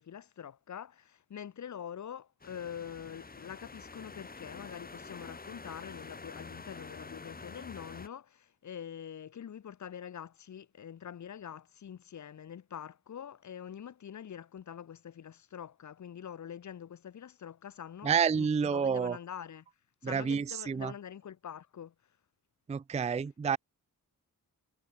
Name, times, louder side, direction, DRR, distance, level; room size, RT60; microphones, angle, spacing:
voice 1, 0.0-19.7 20.0-21.9, left 8 dB, 50° left, 0.7 m, -45 dB
sound 1, 2.4-8.1, left 4 dB, 25° left, 1.2 m, -47 dB
voice 2, 18.0-19.2 20.0-20.9 22.7-23.6, right 6 dB, 20° right, 0.4 m, -29 dB
wide cardioid pair, 100°, 36 cm